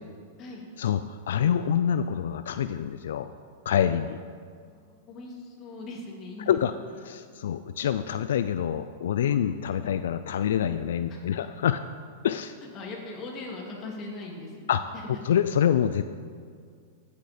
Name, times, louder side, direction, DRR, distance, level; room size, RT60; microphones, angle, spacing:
voice 1, 0.8-3.3 3.7-4.2 6.4-6.7 7.0-11.8 12.2-12.5 14.7-14.9 15.2-16.0, left 9 dB, 80° left, 11 dB, 0.4 m, -26 dB
voice 2, 4.6-6.6 7.6-7.7 11.1-11.2 12.7-15.1, left 2 dB, 30° left, -1 dB, 2.6 m, -40 dB
15.0 x 8.2 x 4.4 m, 2.1 s
hypercardioid pair, 140°, 0 cm